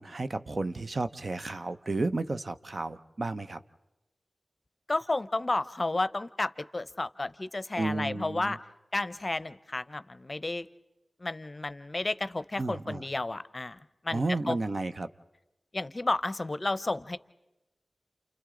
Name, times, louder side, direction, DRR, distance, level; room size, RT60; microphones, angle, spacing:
voice 1, 0.0-3.6 7.8-8.6 12.6-13.0 14.1-15.1, right 2 dB, 60° right, 10 dB, 0.7 m, -32 dB
voice 2, 4.9-8.6 8.9-10.7 11.2-13.8 14.0-14.6 15.7-17.2, left 2 dB, 40° left, 14 dB, 0.7 m, -32 dB
29.0 x 29.0 x 3.8 m, 0.97 s
cardioid pair, 45°, 0 cm